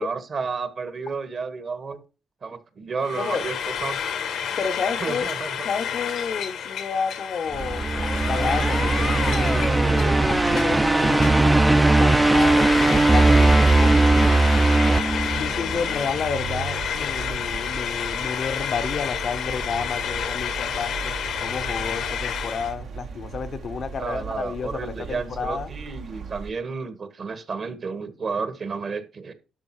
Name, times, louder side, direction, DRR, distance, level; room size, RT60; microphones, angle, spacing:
voice 1, 0.0-2.0 2.4-3.6 3.8-4.1 5.0-5.6 24.0-29.3, right 4 dB, 50° right, 1.7 m, -31 dB
Frying (food), 3.0-22.7, left 8 dB, 85° left, 1.5 m, -30 dB
voice 2, 4.6-5.3 5.6-14.4 15.3-25.7, left 6 dB, 55° left, 0.9 m, -31 dB
Traffic noise roadway noise, 7.5-26.5, right 6 dB, 70° right, 1.7 m, -35 dB
sound 1, 7.6-15.9, right 2 dB, 15° right, 0.5 m, -19 dB
12.0 x 5.2 x 4.8 m
cardioid pair, 90°, 0 cm